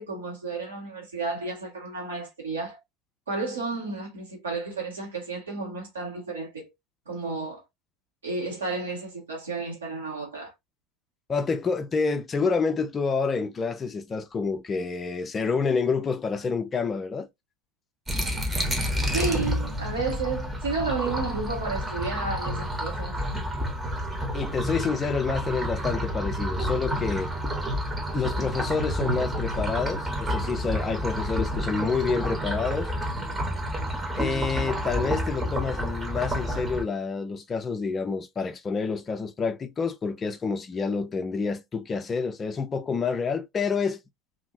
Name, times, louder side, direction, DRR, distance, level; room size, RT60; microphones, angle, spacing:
voice 1, 0.0-2.8 3.3-6.7 7.1-7.6 8.2-10.5 19.1-23.2, right 3 dB, 75° right, 1.6 m, -32 dB
voice 2, 11.3-17.3 24.3-27.3 28.1-32.9 34.1-44.0, left 5 dB, 25° left, 0.4 m, -28 dB
sound 1, 18.1-36.8, equal, 20° right, 1.1 m, -29 dB
2.8 x 2.7 x 2.6 m
figure-of-eight pair, 70°, 0 cm